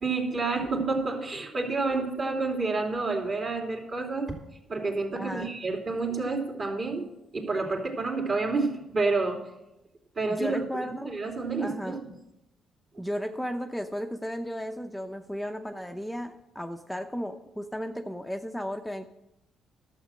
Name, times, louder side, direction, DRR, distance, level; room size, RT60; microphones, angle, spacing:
voice 1, 0.0-4.3 4.7-7.1 7.3-9.4 10.2-10.6 11.0-12.1, right 3 dB, 40° right, 1 dB, 2.8 m, -29 dB
voice 2, 5.1-5.5 10.3-11.1 11.6-12.0 13.0-19.1, equal, 5° left, 4 dB, 0.7 m, -34 dB
12.0 x 7.5 x 6.3 m, 0.88 s
cardioid pair, 90°, 0 cm